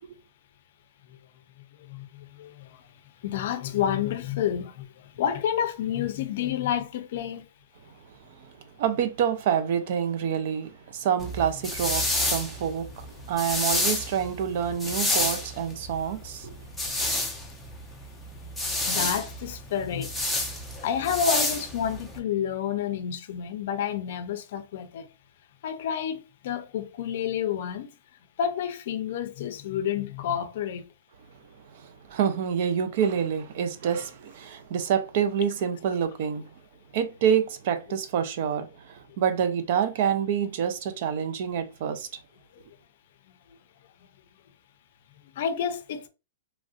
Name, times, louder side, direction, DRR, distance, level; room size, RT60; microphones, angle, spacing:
voice 1, 1.9-2.7 3.2-4.8 5.2-7.4 18.9-20.1 20.8-25.1 25.6-27.9 28.4-30.8 45.4-46.1, left 8 dB, 50° left, 0.5 m, -29 dB
voice 2, 8.3-16.5 31.7-36.5 36.9-42.1, right 8 dB, 45° right, 0.5 m, -27 dB
sound 1, 11.2-22.2, left 1 dB, ahead, 0.6 m, -29 dB
3.1 x 2.5 x 2.5 m
hypercardioid pair, 170°, 0 cm